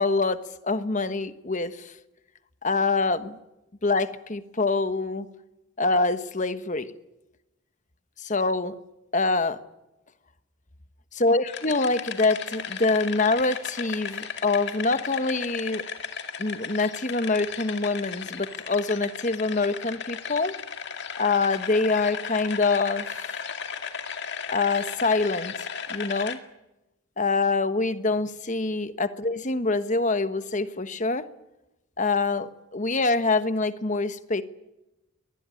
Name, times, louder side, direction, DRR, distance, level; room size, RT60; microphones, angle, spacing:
voice 1, 0.0-1.9 2.6-3.4 3.8-5.3 5.8-6.9 8.2-8.7 9.1-9.6 11.2-15.9 16.4-20.6 21.2-23.4 24.5-26.4 27.2-31.3 32.0-34.4, left 3 dB, 35° left, 11 dB, 1.2 m, -25 dB
sound 1, 11.5-26.4, left 6 dB, 50° left, 2.2 m, -35 dB
23.0 x 19.5 x 9.9 m, 0.97 s
head